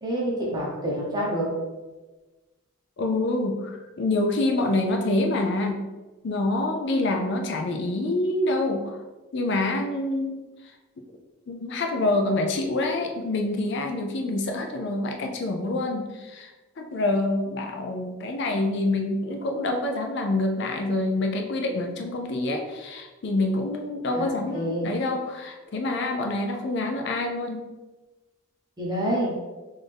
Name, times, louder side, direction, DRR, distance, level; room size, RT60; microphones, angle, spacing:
voice 1, 0.0-1.5 24.1-24.3 24.5-24.9 28.8-29.4, equal, 20° right, -4 dB, 0.8 m, -27 dB
voice 2, 3.0-5.8 6.2-9.0 9.3-10.4 11.5-16.5 16.8-27.6, left 2 dB, 55° left, 3 dB, 0.4 m, -26 dB
3.9 x 2.6 x 3.3 m, 1.2 s
head